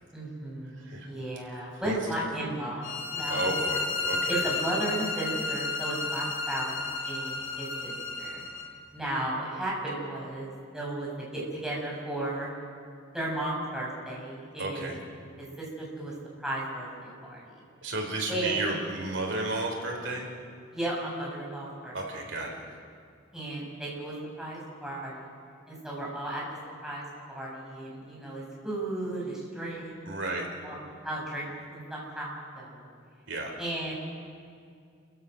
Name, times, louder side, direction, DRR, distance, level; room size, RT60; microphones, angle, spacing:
voice 1, 0.1-3.5 4.3-8.4 8.9-12.5 13.1-14.9 15.4-16.1 16.4-17.6 18.3-18.8 20.7-22.0 23.3-25.3 25.7-26.6 26.8-30.1 30.6-30.8 31.0-32.9 33.6-33.9, right 1 dB, 5° right, -5 dB, 6.0 m, -35 dB
voice 2, 0.7-1.1 1.8-2.0 3.2-4.4 14.6-15.0 17.8-20.3 21.9-22.7 30.1-30.5 33.3-33.5, right 2 dB, 65° right, 0 dB, 3.9 m, -33 dB
sound 1, 2.8-8.7, left 4 dB, 90° left, 2.8 m, -32 dB
29.0 x 15.5 x 6.4 m, 2.3 s
head